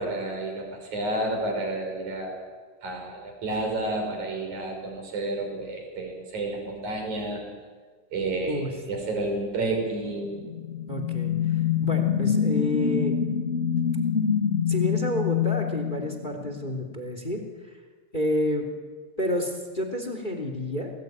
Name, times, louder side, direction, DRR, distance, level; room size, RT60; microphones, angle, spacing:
voice 1, 0.0-2.4 2.8-7.4 8.1-10.4, right 2 dB, 40° right, 3 dB, 6.9 m, -30 dB
voice 2, 8.4-8.8 10.9-13.1 14.7-17.4 18.1-18.7 19.2-20.9, left 1 dB, 15° left, 6 dB, 2.5 m, -29 dB
sound 1, 10.2-16.8, left 8 dB, 30° left, 1.3 m, -26 dB
30.0 x 20.5 x 9.5 m, 1.5 s
omnidirectional pair, 5.2 m